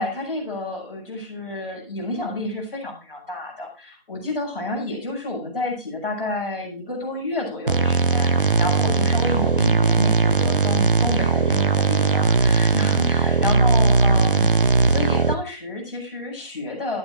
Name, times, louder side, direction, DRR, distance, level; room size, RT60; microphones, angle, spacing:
voice 1, 0.0-17.0, left 2 dB, 10° left, -9 dB, 6.5 m, -30 dB
sound 1, 7.7-15.3, right 4 dB, 60° right, 1.0 m, -19 dB
13.5 x 11.5 x 2.8 m, 0.33 s
figure-of-eight pair, 165°, 30 cm